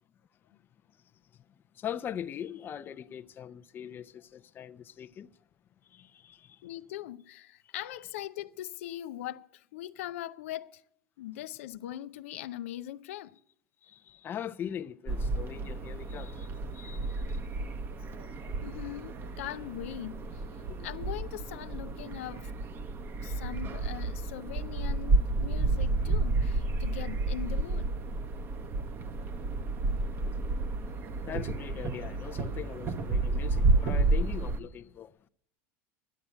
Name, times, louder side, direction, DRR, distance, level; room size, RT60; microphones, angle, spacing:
voice 1, 1.8-5.3 5.9-6.6 13.8-17.4 20.7-20.8 23.2-23.3 30.2-30.3 31.3-35.1, left 9 dB, 30° left, 0.5 m, -41 dB
voice 2, 6.6-10.8 11.2-13.3 18.6-20.4 20.8-22.5 23.2-27.9, left 13 dB, 85° left, 0.5 m, -41 dB
sound 1, 15.1-34.6, right 3 dB, 35° right, 0.9 m, -31 dB
11.0 x 8.0 x 8.9 m
supercardioid pair, 120°, 7 cm